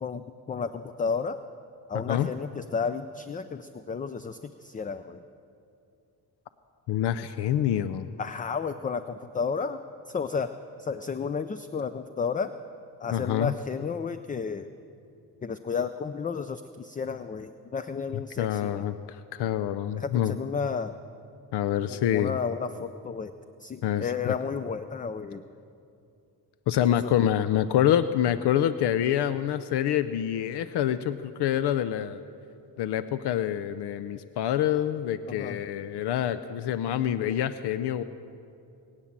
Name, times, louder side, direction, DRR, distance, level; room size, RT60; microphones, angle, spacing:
voice 1, 0.0-1.4 1.9-5.2 8.2-9.8 10.1-10.5 10.8-12.5 13.0-14.7 15.4-18.9 20.0-21.0 21.9-23.3 23.6-25.4 26.8-27.1 35.3-35.6, left 5 dB, 20° left, 12 dB, 0.4 m, -32 dB
voice 2, 6.9-8.1 13.1-13.5 18.4-20.4 21.5-22.4 23.8-24.3 26.7-32.2 32.8-38.0, left 11 dB, 75° left, 13 dB, 0.6 m, -26 dB
21.5 x 9.0 x 7.3 m, 2.6 s
cardioid pair, 105°, 41 cm